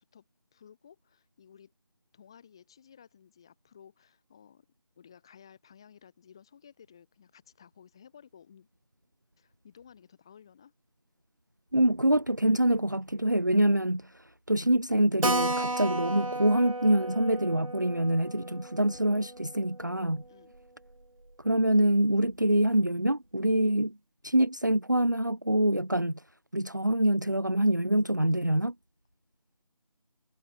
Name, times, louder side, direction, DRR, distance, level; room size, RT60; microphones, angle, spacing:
voice 1, 0.5-1.7 2.1-4.7 5.0-8.7 9.4-10.7 18.5-18.6 20.3-20.5, left 8 dB, 10° left, 3.2 m, -56 dB
voice 2, 11.7-20.2 21.4-24.0 24.2-26.1 26.5-28.7, right 1 dB, 30° right, 0.8 m, -25 dB
Keyboard (musical), 15.2-20.3 20.5-20.6 20.9-21.0 21.3-21.4 22.0-22.3, right 2 dB, 60° right, 6.2 m, -34 dB
figure-of-eight pair, 180°, 19 cm